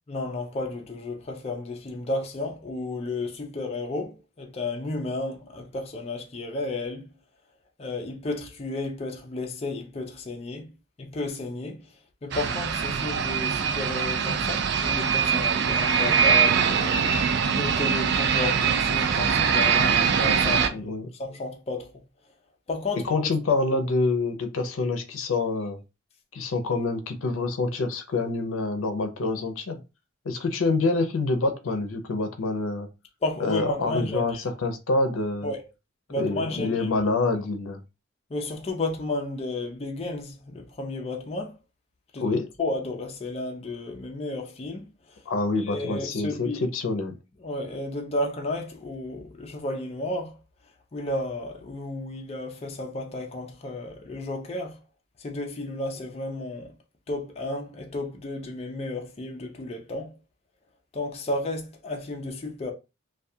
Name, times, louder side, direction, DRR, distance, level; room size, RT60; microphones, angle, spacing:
voice 1, 0.1-7.1 7.8-10.7 11.0-11.9 12.2-17.0 17.5-21.9 22.7-23.3 33.2-34.4 35.4-35.6 36.1-36.9 38.3-41.5 42.1-42.2 42.6-44.9 45.6-46.6 47.4-50.4 50.9-54.8 55.2-56.7 57.1-60.1 60.9-62.7, left 2 dB, 30° left, 0.4 m, -32 dB
sound 1, 12.3-20.7, right 7 dB, 55° right, 0.3 m, -23 dB
voice 2, 20.7-21.1 23.0-25.8 26.3-29.8 30.2-32.9 33.4-35.5 36.2-37.8 42.2-42.5 45.3-47.2, left 3 dB, 85° left, 0.5 m, -26 dB
2.3 x 2.3 x 2.6 m
head